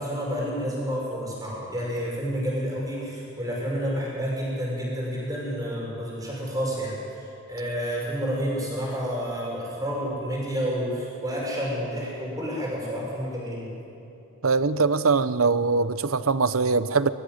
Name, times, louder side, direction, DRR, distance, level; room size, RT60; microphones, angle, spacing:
voice 1, 0.0-13.8, equal, 15° right, -4 dB, 6.2 m, -30 dB
voice 2, 14.4-17.1, right 4 dB, 85° right, 14 dB, 0.8 m, -22 dB
21.5 x 15.0 x 9.7 m, 2.7 s
head